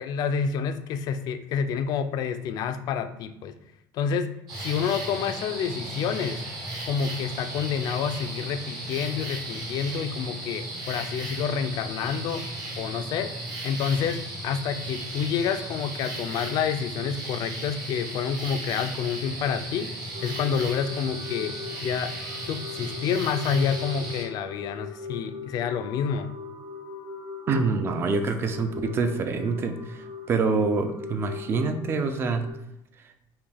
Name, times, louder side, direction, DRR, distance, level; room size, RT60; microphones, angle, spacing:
voice 1, 0.0-3.5 3.9-6.4 6.8-13.4 13.6-19.9 20.2-22.1 22.5-26.3, left 7 dB, 55° left, 9 dB, 0.4 m, -28 dB
sound 1, 4.5-24.2, right 1 dB, 55° right, 1.3 m, -35 dB
sound 2, 20.1-32.5, left 5 dB, 85° right, 1.6 m, -40 dB
voice 2, 27.5-30.0 30.3-32.4, right 4 dB, 30° right, 7 dB, 0.4 m, -26 dB
5.5 x 2.2 x 3.4 m, 0.81 s
cardioid pair, 160°, 8 cm